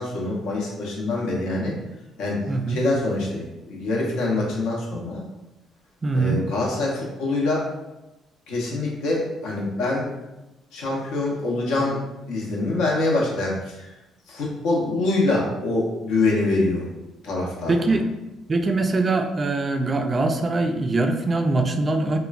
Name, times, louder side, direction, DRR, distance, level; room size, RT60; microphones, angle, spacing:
voice 1, 0.0-1.8 2.2-2.4 2.7-5.3 6.1-7.6 8.5-10.1 10.7-12.0 12.3-13.9 14.3-16.9 17.2-17.9, left 2 dB, 85° left, -3 dB, 0.7 m, -25 dB
voice 2, 2.5-2.8 6.0-6.4 17.7-18.0 18.5-22.2, right 2 dB, 35° right, 6 dB, 0.3 m, -22 dB
3.1 x 2.1 x 2.4 m, 0.99 s
cardioid pair, 90°, 0 cm